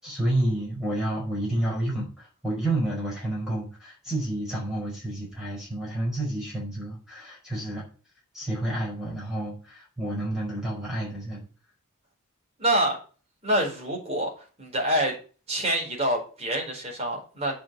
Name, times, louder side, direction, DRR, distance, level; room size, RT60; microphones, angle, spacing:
voice 1, 0.0-7.8 8.3-11.4, right 1 dB, ahead, -4 dB, 5.3 m, -30 dB
voice 2, 12.6-13.0 13.4-14.3 14.6-15.2 15.5-17.6, right 1 dB, 30° right, -1 dB, 4.6 m, -26 dB
9.0 x 5.8 x 7.6 m, 0.37 s
head